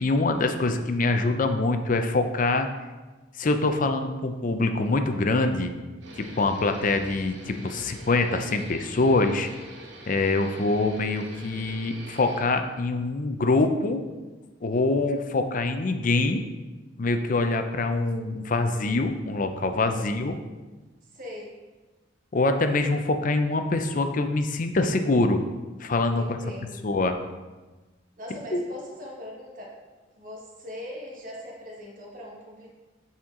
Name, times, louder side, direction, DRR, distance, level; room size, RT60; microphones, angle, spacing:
voice 1, 0.0-2.7 3.4-5.7 6.2-9.5 10.1-14.0 14.6-16.4 17.0-20.4 22.3-25.4 25.8-26.4 26.8-27.2 28.5-28.6, left 2 dB, 45° left, 7 dB, 0.5 m, -24 dB
sound 1, 6.0-12.4, right 1 dB, 70° right, 1.0 m, -45 dB
voice 2, 21.1-21.5 26.2-26.9 28.2-29.7 30.2-32.7, left 1 dB, 45° right, -2 dB, 1.3 m, -40 dB
8.5 x 4.4 x 3.7 m, 1.2 s
head